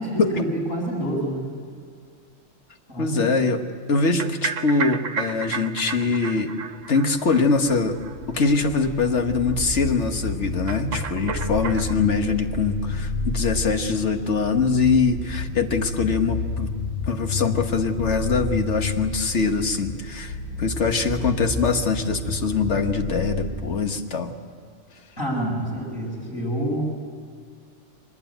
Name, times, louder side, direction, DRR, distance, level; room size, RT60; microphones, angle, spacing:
voice 1, 0.0-1.5 2.9-3.3 25.2-26.9, right 1 dB, 40° left, -2 dB, 7.9 m, -27 dB
voice 2, 3.0-6.5 6.9-8.0 8.3-16.7 17.1-24.3, left 4 dB, 55° left, 6 dB, 1.7 m, -23 dB
sound 1, 4.0-8.5 8.8-8.9 9.1-9.2 9.5-9.6 10.7-12.0, right 6 dB, 65° right, 1.2 m, -33 dB
sound 2, 7.7-23.5, left 3 dB, 80° left, 4.9 m, -31 dB
23.5 x 20.0 x 9.2 m, 2.1 s
omnidirectional pair, 1.4 m